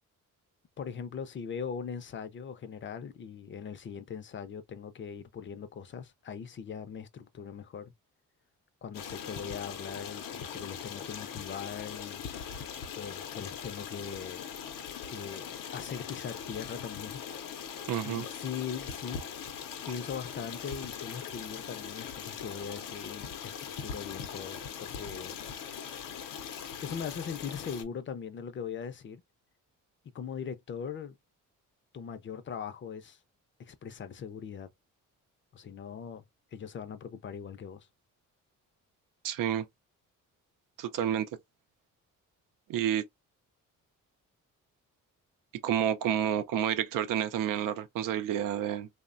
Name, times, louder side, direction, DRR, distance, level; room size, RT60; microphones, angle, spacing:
voice 1, 0.8-7.9 8.8-12.2 12.9-14.4 15.1-17.2 17.6-19.2 19.9-25.4 26.8-29.2 30.1-31.2 31.9-33.2 33.6-34.7 35.5-36.2 36.5-37.9, left 7 dB, 35° left, 0.5 m, -40 dB
Stream, 8.9-27.8, left 8 dB, 80° left, 0.7 m, -41 dB
voice 2, 17.9-18.3 39.2-39.7 40.8-41.3 42.7-43.0 45.6-48.9, right 10 dB, 80° right, 0.5 m, -29 dB
3.0 x 2.1 x 2.4 m
cardioid pair, 105°, 32 cm